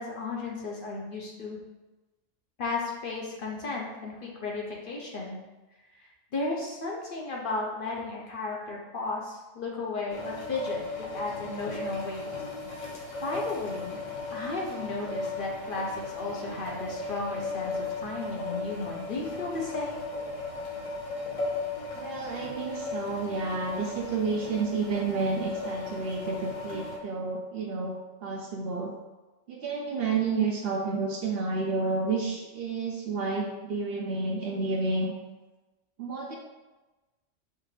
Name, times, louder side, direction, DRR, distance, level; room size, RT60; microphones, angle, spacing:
voice 1, 0.0-1.6 2.6-5.4 6.3-12.3 13.2-20.0, left 3 dB, 50° left, -2 dB, 0.8 m, -34 dB
sound 1, 10.1-27.0, left 3 dB, 85° left, 1.3 m, -36 dB
voice 2, 21.9-27.9 28.2-28.9 29.5-35.1 36.0-36.4, right 4 dB, 60° right, 0 dB, 0.7 m, -30 dB
5.6 x 2.5 x 3.2 m, 1.1 s
omnidirectional pair, 1.3 m